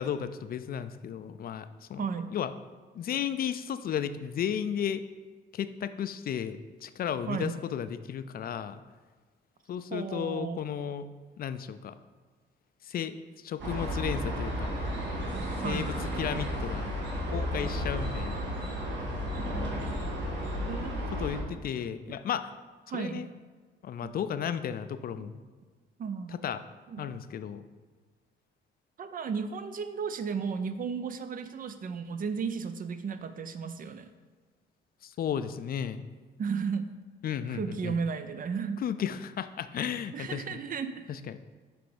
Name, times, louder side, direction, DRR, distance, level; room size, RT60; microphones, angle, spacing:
voice 1, 0.0-2.0 2.3-2.5 2.9-5.0 5.5-8.8 9.7-11.1 11.4-11.9 12.8-14.7 15.6-16.9 17.3-18.4 21.2-22.5 22.9-23.3 23.8-25.4 26.3-26.6 27.0-27.6 35.0-36.0 37.2-38.0 38.8-40.6 41.1-41.4, left 8 dB, 50° left, 12 dB, 0.4 m, -34 dB
voice 2, 2.0-2.4 7.3-7.5 9.9-10.6 15.6-15.9 20.6-21.6 22.9-23.3 25.2-25.3 26.0-26.3 26.9-27.1 29.0-34.1 36.4-36.9 37.5-38.8 40.1-41.1, right 6 dB, 45° right, 10 dB, 0.5 m, -34 dB
sound 1, 13.6-21.4, equal, 65° right, 1.6 m, -33 dB
6.1 x 3.4 x 5.0 m, 1.4 s
cardioid pair, 90°, 20 cm